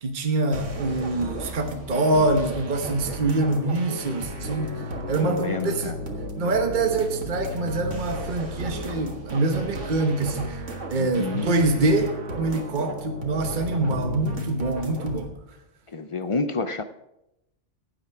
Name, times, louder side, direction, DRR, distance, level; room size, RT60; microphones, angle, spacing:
voice 1, 0.0-6.0 6.4-10.6 10.9-15.3, right 2 dB, 45° right, 5 dB, 1.2 m, -25 dB
sound 1, 0.5-15.3, equal, 85° right, 1.9 m, -34 dB
voice 2, 5.2-6.0 6.4-6.5 10.9-11.5 15.9-16.8, left 3 dB, 40° left, 11 dB, 0.4 m, -29 dB
15.0 x 9.0 x 4.7 m, 0.88 s
omnidirectional pair, 1.2 m